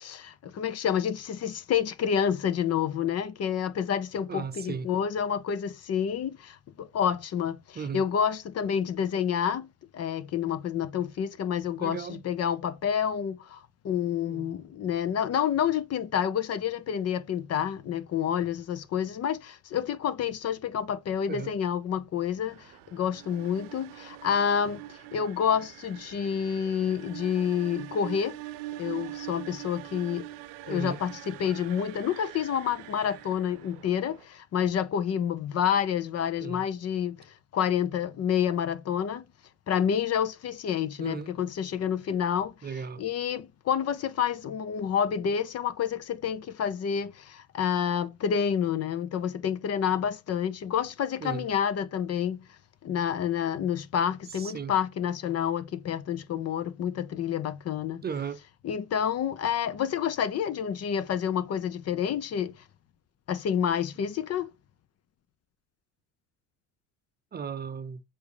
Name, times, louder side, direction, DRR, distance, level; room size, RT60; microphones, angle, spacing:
voice 1, 0.0-9.7 9.9-28.4 28.8-30.3 30.6-37.3 37.5-39.2 39.7-42.5 43.0-52.4 52.8-58.0 58.6-62.6 63.3-64.5, left 8 dB, 40° left, 0.8 m, -29 dB
voice 2, 4.3-4.9 7.8-8.1 11.8-12.2 14.3-14.5 21.3-21.5 30.7-31.0 36.4-36.7 41.0-41.3 42.6-43.0 51.2-51.5 54.3-54.7 58.0-58.4 67.3-68.0, right 6 dB, 25° right, 0.7 m, -36 dB
sound 1, 22.4-34.3, right 16 dB, 65° right, 0.7 m, -43 dB
7.9 x 2.8 x 4.9 m
hypercardioid pair, 75°, 37 cm